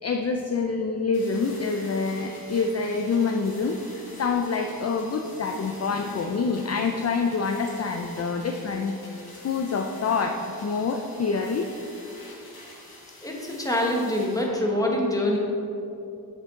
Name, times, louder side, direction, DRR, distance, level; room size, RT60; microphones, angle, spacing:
voice 1, 0.0-9.0 9.4-11.7, left 4 dB, 45° left, 4 dB, 0.4 m, -26 dB
sound 1, 1.1-14.4, left 1 dB, 80° left, 1.8 m, -47 dB
voice 2, 13.2-15.4, left 1 dB, 10° left, -2 dB, 1.1 m, -25 dB
7.6 x 6.7 x 3.7 m, 2.8 s
wide cardioid pair, 115°, 38 cm